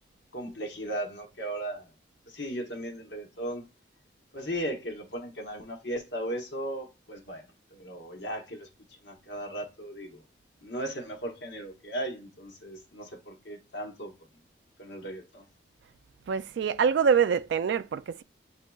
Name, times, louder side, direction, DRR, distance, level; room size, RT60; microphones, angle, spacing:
voice 1, 0.3-1.9 2.3-3.6 4.3-7.4 7.7-8.7 9.0-10.2 10.6-14.1 14.8-15.4, right 1 dB, 70° left, 1.1 m, -36 dB
voice 2, 16.3-18.2, right 6 dB, 75° right, 0.3 m, -25 dB
8.1 x 2.7 x 2.3 m
head